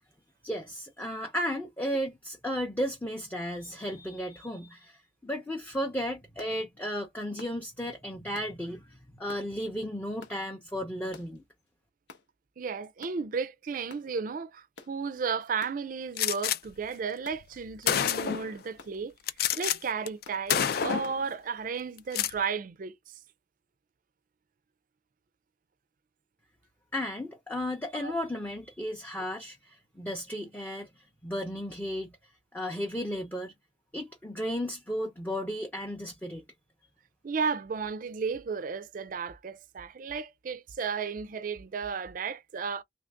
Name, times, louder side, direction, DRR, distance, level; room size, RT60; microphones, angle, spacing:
voice 1, 0.4-11.4 26.9-32.1 32.5-33.5 33.9-36.4, equal, 10° left, 0.5 m, -34 dB
sound 1, 6.4-6.6 7.4-7.6 8.3-8.5 9.3-9.5 10.2-10.4 11.1-11.4 12.1-12.3 13.0-13.2 13.9-14.1 14.8-15.0 15.6-15.8 16.4-16.6 17.2-17.4 18.0-18.2 18.8-19.0 19.5-19.7 20.2-20.4 21.0-21.2, left 3 dB, 85° left, 1.0 m, -50 dB
voice 2, 12.6-19.1 19.6-23.0 28.0-28.1 37.2-42.8, right 5 dB, 50° right, 0.4 m, -34 dB
Gunshot gunfire, 16.2-16.6 17.4-17.5 17.9-18.5 19.3-19.8 20.1-20.2 20.5-21.2 22.0-22.4, left 9 dB, 55° left, 0.3 m, -28 dB
3.1 x 2.5 x 3.4 m
head